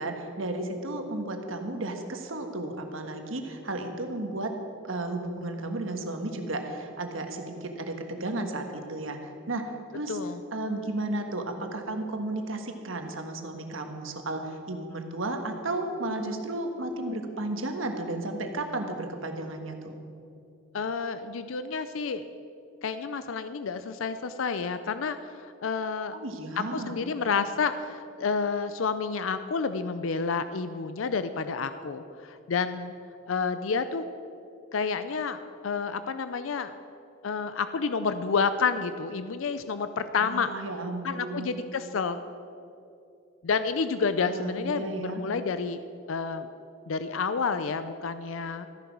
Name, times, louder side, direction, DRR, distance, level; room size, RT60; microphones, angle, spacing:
voice 1, 0.0-4.5 4.8-10.2 10.5-20.0 26.1-27.0 40.2-41.5 44.2-45.2, right 2 dB, 80° right, 5 dB, 1.4 m, -33 dB
voice 2, 10.1-10.4 20.7-22.3 22.8-26.1 26.7-32.9 33.3-34.0 34.7-36.7 37.2-40.5 41.0-42.2 43.4-45.8 46.1-46.5 46.9-48.7, left 5 dB, 80° left, 11 dB, 0.5 m, -29 dB
14.0 x 10.0 x 6.1 m, 2.8 s
head